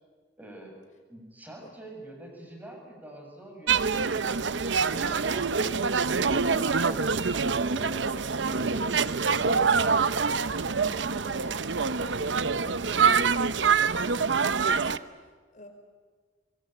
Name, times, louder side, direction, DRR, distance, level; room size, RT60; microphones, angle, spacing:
voice 1, 0.4-0.8 1.1-5.9 6.3-7.3 7.6-8.9, right 1 dB, 10° right, 1 dB, 6.8 m, -45 dB
sound 1, 3.7-15.0, right 5 dB, 80° right, 0.9 m, -25 dB
voice 2, 9.3-15.3 15.5-15.7, left 1 dB, 45° left, 5 dB, 5.0 m, -49 dB
24.0 x 23.5 x 9.1 m, 1.5 s
head